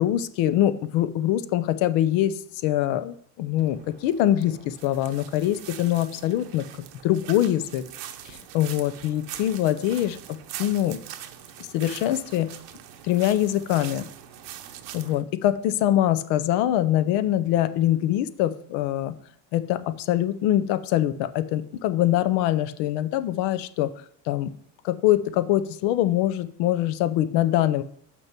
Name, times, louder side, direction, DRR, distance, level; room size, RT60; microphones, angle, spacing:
voice 1, 0.0-6.6 7.0-7.8 8.3-10.2 10.6-11.0 11.6-12.5 13.0-14.1 14.9-19.1 19.5-23.9 24.3-24.5 24.8-27.8, left 13 dB, 75° left, 13 dB, 0.7 m, -23 dB
sound 1, 3.6-15.2, right 11 dB, 70° right, 0.9 m, -42 dB
6.1 x 4.5 x 6.0 m, 0.62 s
supercardioid pair, 80°, 45 cm